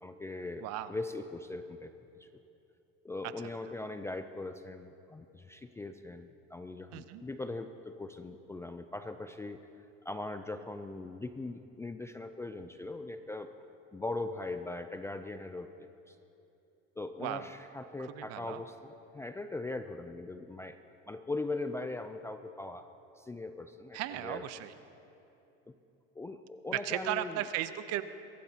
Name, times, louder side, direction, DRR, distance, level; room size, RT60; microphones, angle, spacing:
voice 1, 0.0-2.3 3.0-9.7 10.0-13.5 13.9-16.2 17.0-20.8 21.1-22.9 23.2-24.5 25.7-25.8 26.2-27.4, left 2 dB, 10° left, 8 dB, 0.3 m, -40 dB
voice 2, 0.6-0.9 6.9-7.2 17.2-17.5 18.1-18.6 23.9-24.7 26.7-28.0, right 13 dB, 55° right, 12 dB, 0.8 m, -35 dB
23.0 x 16.0 x 2.9 m, 2.9 s
supercardioid pair, 130°, 30 cm